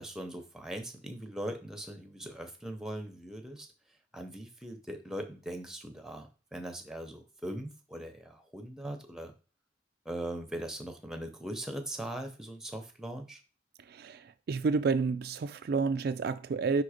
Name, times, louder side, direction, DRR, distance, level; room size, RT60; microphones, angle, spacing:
voice 1, 0.0-3.7 4.1-9.3 10.0-13.4, right 1 dB, 5° right, 0.8 m, -40 dB
voice 2, 13.9-16.8, right 4 dB, 55° right, 0.3 m, -30 dB
5.3 x 3.8 x 5.0 m
head